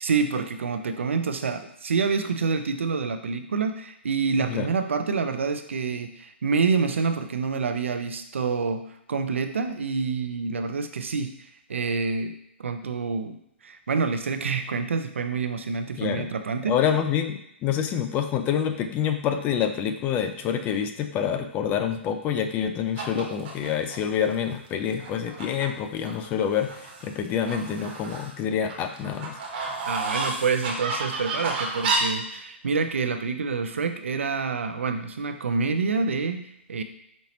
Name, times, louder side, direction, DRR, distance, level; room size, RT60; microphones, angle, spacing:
voice 1, 0.0-11.3 11.7-12.3 12.6-16.8 29.9-36.8, right 5 dB, 80° right, 8 dB, 0.5 m, -27 dB
voice 2, 16.0-16.3 16.7-29.8, left 8 dB, 25° left, 7 dB, 0.4 m, -27 dB
sound 1, 23.0-24.0 24.6-24.7 25.0-25.7 26.0-27.1 27.5-28.3 28.7-32.0, right 4 dB, 50° right, 1.0 m, -31 dB
5.2 x 2.9 x 2.9 m, 0.75 s
hypercardioid pair, 125°, 7 cm